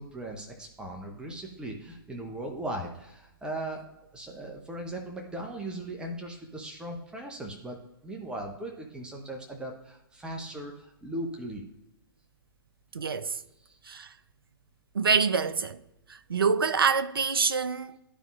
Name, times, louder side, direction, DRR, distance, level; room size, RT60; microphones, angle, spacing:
voice 1, 0.0-3.8 4.1-7.8 8.0-11.6 13.6-13.8, right 1 dB, 5° right, 0.8 m, -38 dB
voice 2, 12.9-13.4 13.8-14.1 14.9-15.8 16.1-18.0, right 5 dB, 70° right, 0.6 m, -26 dB
12.0 x 5.1 x 2.5 m
figure-of-eight pair, 120°, 12 cm